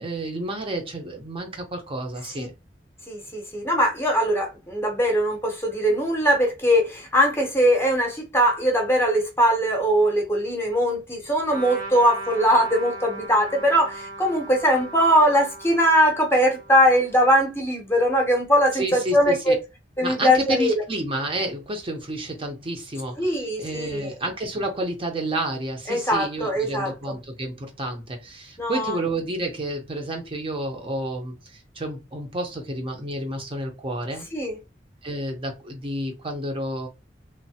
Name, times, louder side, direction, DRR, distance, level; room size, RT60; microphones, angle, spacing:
voice 1, 0.0-2.5 18.7-19.6 20.0-34.3 35.0-36.9, right 1 dB, 30° right, 0.6 m, -30 dB
voice 2, 3.1-19.6 20.0-20.8 23.2-24.1 25.9-26.9 28.6-29.0 34.3-34.6, equal, 15° left, 0.7 m, -21 dB
Trumpet, 11.5-17.3, right 2 dB, 80° right, 1.1 m, -38 dB
3.0 x 2.1 x 2.7 m
head